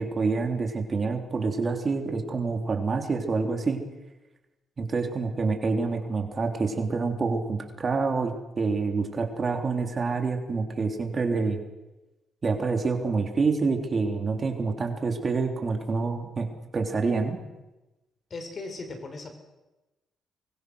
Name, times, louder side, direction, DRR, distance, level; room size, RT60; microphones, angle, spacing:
voice 1, 0.0-3.8 4.8-11.6 12.4-17.4, right 4 dB, 35° right, 4 dB, 3.4 m, -27 dB
voice 2, 18.3-19.3, left 3 dB, 45° left, 6 dB, 4.9 m, -37 dB
24.5 x 22.5 x 6.5 m, 1.1 s
cardioid pair, 90°, 0 cm